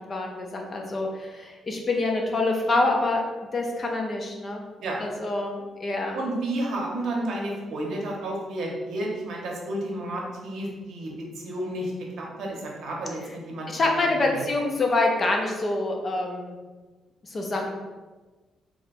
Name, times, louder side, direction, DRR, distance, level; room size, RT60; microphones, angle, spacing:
voice 1, 0.1-3.2 3.5-4.6 5.0-6.2 13.7-16.6 17.2-17.7, left 2 dB, 30° left, 1 dB, 0.4 m, -26 dB
voice 2, 6.1-14.1 14.3-14.4, right 1 dB, 65° right, -1 dB, 0.7 m, -31 dB
2.9 x 2.2 x 4.1 m, 1.3 s
cardioid pair, 175°, 0 cm